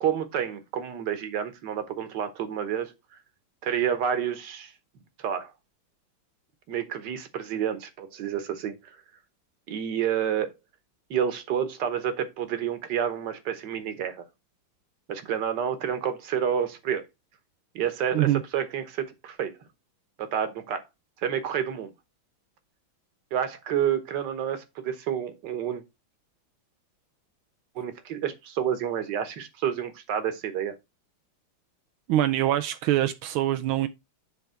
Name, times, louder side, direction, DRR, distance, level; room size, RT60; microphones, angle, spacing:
voice 1, 0.0-2.9 3.6-4.7 5.2-5.5 6.7-9.0 9.7-10.5 11.1-14.2 15.1-17.0 17.8-19.5 20.2-20.8 21.2-21.9 23.3-25.8 27.8-30.7, right 9 dB, 60° right, 1.7 m, -29 dB
voice 2, 32.1-33.9, right 13 dB, 85° right, 1.4 m, -24 dB
10.5 x 3.6 x 4.3 m
omnidirectional pair, 2.2 m